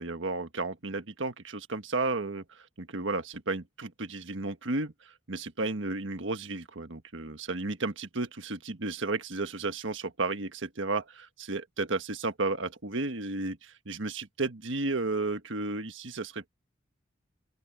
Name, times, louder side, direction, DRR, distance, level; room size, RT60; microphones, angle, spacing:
voice 1, 0.0-16.5, right 3 dB, 70° right, 1.5 m, -33 dB
open air
head